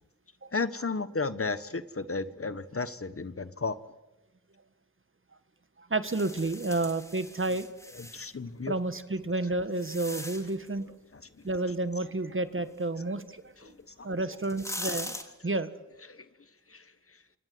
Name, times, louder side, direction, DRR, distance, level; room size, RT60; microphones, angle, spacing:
voice 1, 0.5-3.8 7.9-8.7 11.1-11.5 13.6-14.1 14.9-15.0 16.1-16.3 16.7-17.2, left 4 dB, 45° left, 13 dB, 1.2 m, -34 dB
voice 2, 5.8-7.7 8.7-10.9 11.4-13.5 14.0-15.2 15.4-15.7, right 2 dB, 40° right, 11 dB, 1.6 m, -30 dB
sound 1, 6.0-8.3 9.1-10.7 13.7-13.8 14.3-15.2, left 1 dB, 10° left, 3.0 m, -40 dB
27.5 x 26.0 x 7.9 m, 1.0 s
wide cardioid pair, 80°, 33 cm